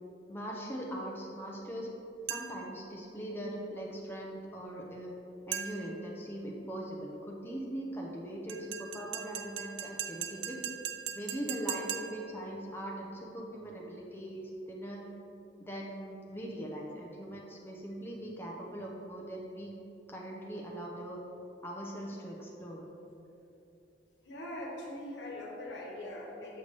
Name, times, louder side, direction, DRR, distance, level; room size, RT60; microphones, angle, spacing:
voice 1, 0.3-1.9 2.3-5.1 5.5-10.6 11.1-15.0 15.6-19.7 20.1-21.2 21.6-22.8, right 1 dB, 15° left, -2 dB, 0.7 m, -41 dB
sound 1, 2.3-2.7 5.5-6.0 8.5-12.3, right 9 dB, 85° right, 0.5 m, -39 dB
voice 2, 24.2-26.6, left 1 dB, 75° left, -2 dB, 1.2 m, -42 dB
6.8 x 6.6 x 3.3 m, 2.8 s
head